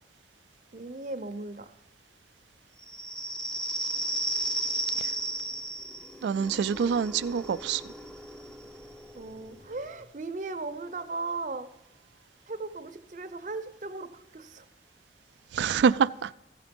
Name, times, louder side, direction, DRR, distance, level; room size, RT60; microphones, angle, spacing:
voice 1, 0.7-1.7 9.1-11.7 12.5-14.6, right 3 dB, 45° right, 0.6 m, -37 dB
sound 1, 2.8-10.1, right 2 dB, 5° left, 0.4 m, -35 dB
voice 2, 6.2-7.8 15.5-16.3, right 6 dB, 75° right, 0.3 m, -26 dB
15.0 x 5.1 x 5.2 m
head